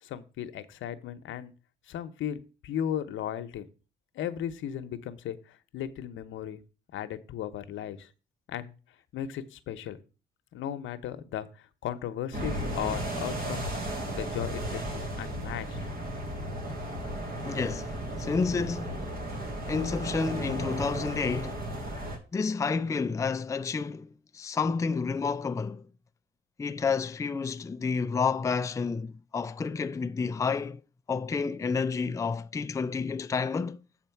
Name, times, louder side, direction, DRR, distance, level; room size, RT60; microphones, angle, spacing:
voice 1, 0.0-1.5 1.9-3.7 4.1-6.6 6.9-8.1 8.5-8.7 9.1-10.0 10.5-13.7 14.1-15.8, left 10 dB, 80° left, 0.9 m, -36 dB
sound 1, 12.3-22.2, right 1 dB, 50° right, 2.6 m, -34 dB
voice 2, 17.4-17.9 18.2-19.1 19.7-21.6 22.3-25.8 26.6-30.8 31.1-33.8, left 5 dB, 15° left, 0.4 m, -30 dB
8.0 x 4.4 x 5.8 m
cardioid pair, 90°, 20 cm